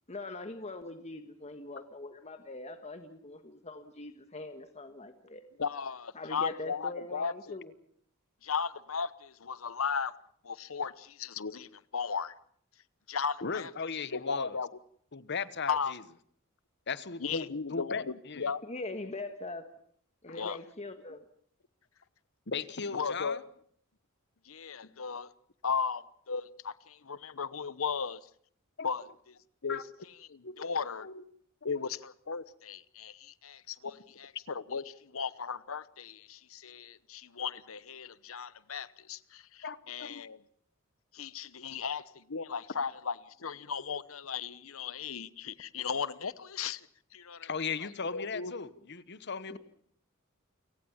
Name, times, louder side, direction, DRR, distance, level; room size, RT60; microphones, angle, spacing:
voice 1, 0.1-5.4 6.1-7.7 18.6-19.6 20.2-21.2 49.5-49.6, left 2 dB, 30° left, 1.5 m, -42 dB
voice 2, 5.6-7.6 8.4-10.1 10.4-12.3 13.1-13.7 14.1-14.8 15.7-15.9 17.2-18.6 20.4-20.6 22.9-23.4 24.4-25.3 25.6-28.2 28.8-29.3 29.6-31.1 31.6-40.4 41.1-46.9 47.1-47.5 47.8-48.5, left 6 dB, 75° left, 0.9 m, -36 dB
voice 3, 13.4-14.6 15.1-16.0 16.9-18.5 20.3-20.4 22.5-23.4 28.8-28.9 29.7-29.8 30.4-30.6 31.0-31.2 39.6-40.2 47.4-49.6, left 5 dB, 55° left, 1.2 m, -37 dB
29.0 x 18.0 x 7.3 m
head